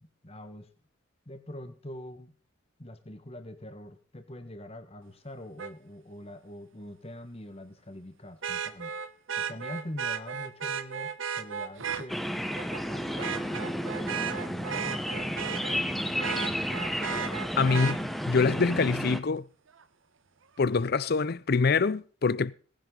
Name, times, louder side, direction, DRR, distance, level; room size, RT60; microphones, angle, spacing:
voice 1, 0.0-0.7 1.2-2.3 2.8-8.9 9.3-12.2 12.8-16.3, left 1 dB, 30° left, 1.4 m, -44 dB
Vehicle horn car horn honking, 5.6-5.7 8.4-12.1 12.6-12.8 13.2-15.8 16.2-18.0 19.8-19.9, right 7 dB, 80° right, 1.0 m, -34 dB
sound 1, 12.1-19.2, equal, ahead, 1.0 m, -32 dB
voice 2, 17.6-19.4 20.6-22.5, left 4 dB, 50° left, 0.6 m, -25 dB
18.5 x 10.5 x 3.8 m
head